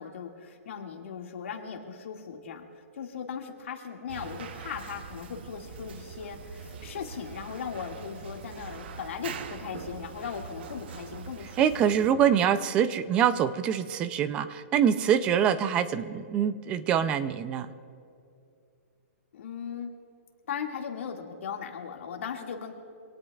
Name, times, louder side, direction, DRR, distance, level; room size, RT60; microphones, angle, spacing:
voice 1, 0.0-2.7 2.9-12.2 19.3-19.9 20.5-22.7, left 7 dB, 55° left, 2 dB, 2.0 m, -38 dB
sound 1, 4.1-12.1, right 6 dB, 45° right, 0.8 m, -43 dB
voice 2, 11.6-17.7, right 9 dB, 15° right, 13 dB, 0.4 m, -25 dB
25.5 x 18.0 x 2.4 m, 2.5 s
hypercardioid pair, 170°, 8 cm